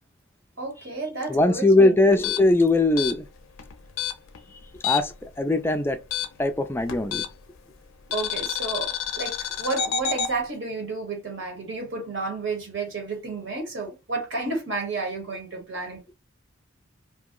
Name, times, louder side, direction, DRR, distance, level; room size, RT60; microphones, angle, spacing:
voice 1, 0.6-2.0 8.1-16.0, right 3 dB, 65° right, 1.0 m, -31 dB
voice 2, 1.3-3.3 4.8-6.0 6.4-7.2, left 2 dB, 10° left, 0.3 m, -20 dB
sound 1, 2.1-5.3 5.5-7.6 8.1-10.3, left 8 dB, 85° left, 0.5 m, -29 dB
2.7 x 2.0 x 3.6 m
head